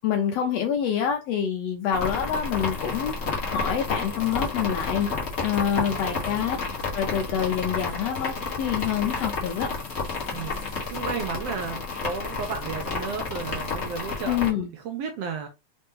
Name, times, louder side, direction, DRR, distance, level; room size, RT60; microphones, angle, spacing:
voice 1, 0.0-5.1 5.4-6.6 6.9-9.7 14.3-14.7, left 8 dB, 80° left, 1.5 m, -26 dB
sound 1, 1.9-14.5, left 4 dB, 65° left, 0.6 m, -31 dB
voice 2, 5.8-6.4 10.3-14.4 14.7-15.5, right 5 dB, 70° right, 1.5 m, -34 dB
5.1 x 2.8 x 3.6 m
omnidirectional pair, 3.5 m